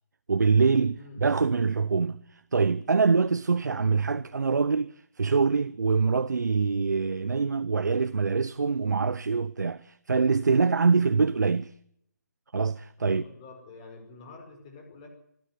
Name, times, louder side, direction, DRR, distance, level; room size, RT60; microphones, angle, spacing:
voice 1, 0.3-11.7 12.5-13.2, right 4 dB, 75° right, 0.8 m, -24 dB
voice 2, 13.0-15.1, left 3 dB, 20° left, 5.3 m, -47 dB
26.0 x 13.0 x 9.7 m
hypercardioid pair, 170°, 10 cm